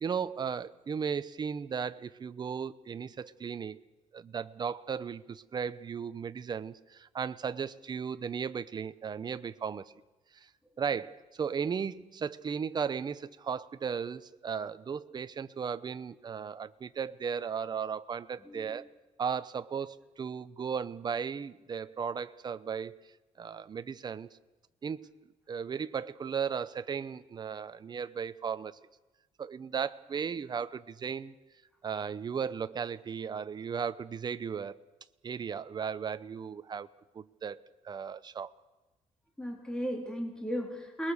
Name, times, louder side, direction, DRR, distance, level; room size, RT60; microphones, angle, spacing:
voice 1, 0.0-3.8 4.1-9.9 10.3-10.5 10.8-18.9 19.2-23.0 23.4-24.3 24.8-25.1 25.5-28.8 29.4-31.3 31.8-34.8 35.2-36.9 37.1-37.6 37.8-38.5, right 6 dB, 30° right, 13 dB, 0.9 m, -36 dB
voice 2, 18.5-18.9 39.4-41.1, equal, 5° left, 2 dB, 3.6 m, -35 dB
28.5 x 21.0 x 6.6 m, 1.1 s
cardioid pair, 140°, 14 cm